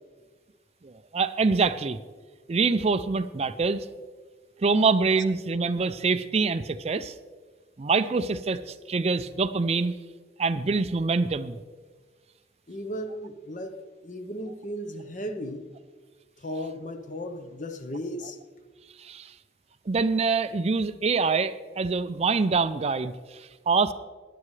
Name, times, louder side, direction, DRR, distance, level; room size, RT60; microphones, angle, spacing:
voice 1, 0.8-2.0 2.5-3.9 4.6-7.1 7.8-10.0 10.4-11.6 19.0-19.3 19.9-23.9, right 4 dB, 35° right, 12 dB, 0.4 m, -25 dB
voice 2, 12.7-15.7 16.4-18.4, equal, 40° left, 8 dB, 0.9 m, -36 dB
17.0 x 11.0 x 3.2 m, 1.4 s
head